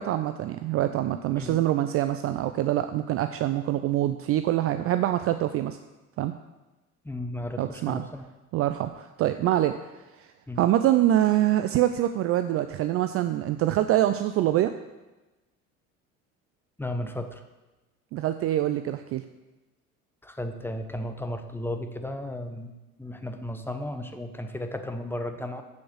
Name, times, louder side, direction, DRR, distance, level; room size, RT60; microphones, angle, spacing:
voice 1, 0.0-5.8 6.2-6.4 7.6-8.0 8.5-9.8 10.2-10.3 10.6-14.7 18.1-19.2, right 13 dB, 35° right, 10 dB, 0.4 m, -25 dB
voice 2, 7.0-8.3 10.5-10.6 16.8-17.4 20.2-22.7 23.0-25.6, left 1 dB, 5° left, 7 dB, 0.9 m, -34 dB
7.8 x 7.0 x 6.4 m, 1.1 s
figure-of-eight pair, 65°, 42 cm